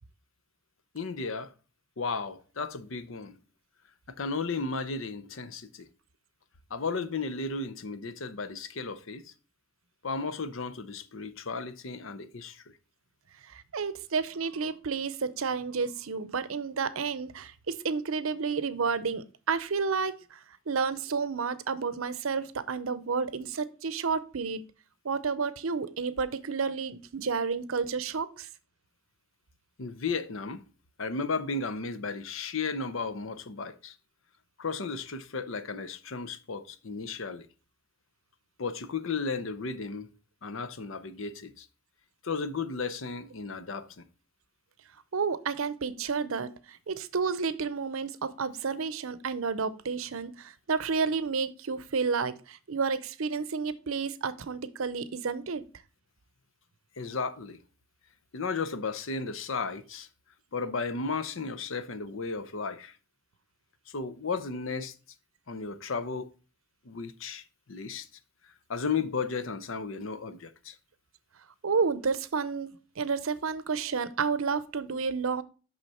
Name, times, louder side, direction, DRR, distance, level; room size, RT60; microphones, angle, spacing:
voice 1, 0.9-1.5 2.0-3.4 4.2-5.9 6.7-9.3 10.0-12.7 29.8-30.6 31.0-34.0 34.6-37.5 38.6-40.1 40.4-41.7 42.2-44.1 57.0-57.6 58.3-60.1 60.5-63.0 63.9-64.9 65.5-66.3 66.8-68.1 68.4-70.8, left 4 dB, 70° left, 0.7 m, -34 dB
voice 2, 13.4-24.6 25.0-28.5 45.1-55.6 71.6-75.4, right 5 dB, 80° right, 0.7 m, -31 dB
6.4 x 5.8 x 4.2 m
head